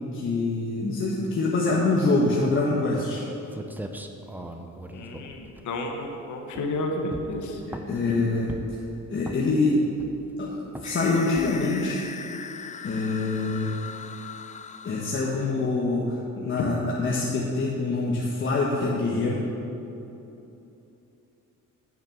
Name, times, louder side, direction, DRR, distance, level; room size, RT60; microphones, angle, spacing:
voice 1, 0.1-3.2 7.7-8.5 9.1-9.8 10.4-10.6 10.8-12.0 12.8-13.7 14.8-19.4, left 3 dB, 40° left, -3 dB, 1.2 m, -25 dB
sound 1, 3.2-3.3 3.5-6.1 6.5-6.8 7.1-8.1 8.5-8.9 9.2-9.6 10.0-10.4 10.8-11.0 11.4-11.7, right 1 dB, 5° right, 0.7 m, -39 dB
voice 2, 4.9-7.6 8.1-8.2 16.6-16.7, left 2 dB, 75° left, 2 dB, 1.1 m, -31 dB
sound 2, 10.8-15.7, left 6 dB, 25° left, 0.4 m, -40 dB
9.1 x 6.5 x 6.1 m, 3.0 s
cardioid pair, 90°, 30 cm